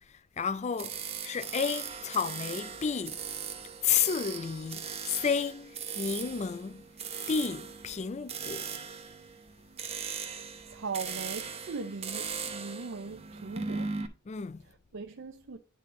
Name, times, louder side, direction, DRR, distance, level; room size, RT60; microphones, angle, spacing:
voice 1, 0.4-1.0 1.2-3.2 3.8-6.8 7.3-8.8 14.3-14.6, left 6 dB, 30° left, 0.3 m, -31 dB
sound 1, 0.8-14.1, right 6 dB, 30° right, 0.7 m, -39 dB
voice 2, 10.7-13.9 14.9-15.6, right 4 dB, 60° right, 0.5 m, -39 dB
10.5 x 3.9 x 3.6 m
head